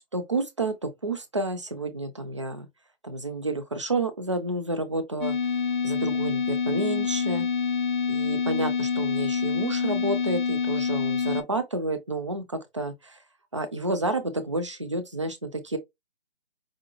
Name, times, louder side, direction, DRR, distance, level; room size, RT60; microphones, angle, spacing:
voice 1, 0.0-2.7 3.0-5.4 5.8-7.5 8.1-13.2 13.5-15.8, right 2 dB, 30° right, 0.4 m, -30 dB
sound 1, 5.2-11.4, left 6 dB, 50° left, 0.6 m, -26 dB
4.9 x 2.2 x 2.3 m
figure-of-eight pair, 160°, 31 cm